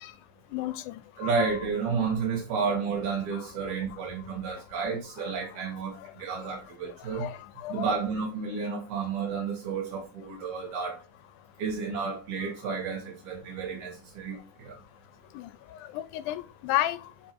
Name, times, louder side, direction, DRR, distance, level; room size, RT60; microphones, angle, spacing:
voice 1, 0.5-1.0 7.2-7.4 7.6-7.9 15.4-15.5 15.9-17.0, left 14 dB, 85° left, 2.1 m, -31 dB
voice 2, 1.2-7.3 7.7-11.0 11.6-14.8, right 5 dB, 75° right, 2.6 m, -31 dB
5.4 x 4.9 x 4.4 m
omnidirectional pair, 3.5 m